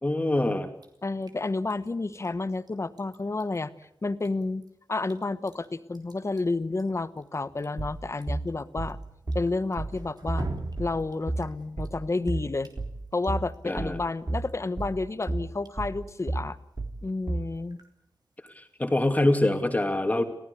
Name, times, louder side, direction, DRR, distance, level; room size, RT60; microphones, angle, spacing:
voice 1, 0.0-0.7 13.6-14.0 18.6-20.2, left 1 dB, 20° left, 5 dB, 2.7 m, -24 dB
Drip, 0.8-19.0, right 2 dB, 60° right, 3.5 m, -47 dB
voice 2, 1.0-9.0 9.3-10.5 10.8-12.7 13.1-16.6 17.0-17.8, left 3 dB, 35° left, 13 dB, 1.1 m, -30 dB
sound 1, 7.8-17.6, right 2 dB, 30° right, 3.0 m, -32 dB
26.5 x 16.5 x 8.4 m, 0.80 s
wide cardioid pair, 105°, 8 cm